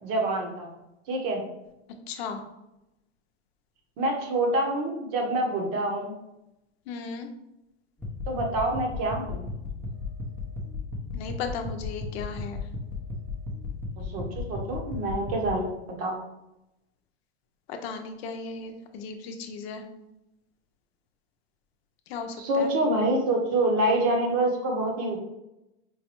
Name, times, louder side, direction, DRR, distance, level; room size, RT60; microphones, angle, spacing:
voice 1, 0.0-0.7 1.1-1.4 4.0-6.1 8.3-9.4 14.0-15.7 16.0-16.2 22.4-25.2, right 1 dB, 45° right, 1 dB, 1.0 m, -26 dB
voice 2, 2.1-2.4 6.9-7.3 11.1-12.6 17.7-19.8 22.1-22.7, left 5 dB, 60° left, 5 dB, 0.7 m, -36 dB
sound 1, 8.0-15.5, left 4 dB, 5° left, 0.5 m, -35 dB
4.6 x 2.2 x 3.0 m, 0.90 s
supercardioid pair, 130°, 34 cm